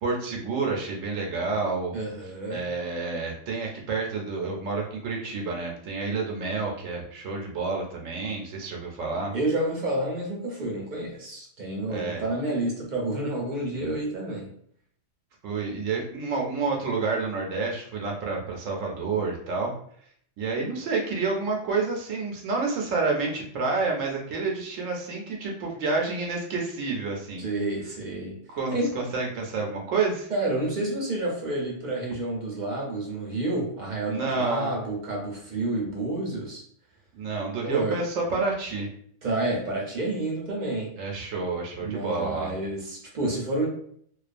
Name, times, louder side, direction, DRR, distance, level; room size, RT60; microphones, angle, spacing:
voice 1, 0.0-1.9 2.5-9.3 11.9-12.2 13.7-13.9 15.4-19.7 20.4-27.4 28.5-30.3 34.1-34.7 37.2-38.9 41.0-42.5, right 4 dB, 85° right, -1 dB, 1.0 m, -29 dB
voice 2, 1.9-2.7 9.3-14.5 27.4-28.4 28.7-29.0 30.3-36.6 37.6-38.0 39.2-40.9 41.8-43.7, right 2 dB, 50° right, -2 dB, 0.6 m, -29 dB
2.4 x 2.2 x 2.5 m, 0.63 s
omnidirectional pair, 1.3 m